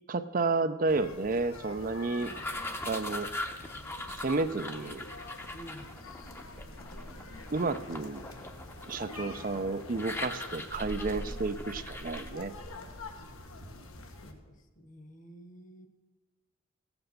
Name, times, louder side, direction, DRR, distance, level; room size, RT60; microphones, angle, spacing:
voice 1, 0.1-2.3 2.9-3.3 4.2-5.1 7.5-8.2 8.9-12.5, right 3 dB, 40° right, 10 dB, 0.5 m, -31 dB
sound 1, 0.9-14.3, left 2 dB, 85° left, 1.4 m, -45 dB
sound 2, 2.2-12.3, left 2 dB, 10° left, 0.7 m, -41 dB
voice 2, 5.5-6.1 14.1-15.9, equal, 35° left, 8 dB, 1.2 m, -51 dB
15.5 x 8.0 x 6.6 m, 1.3 s
head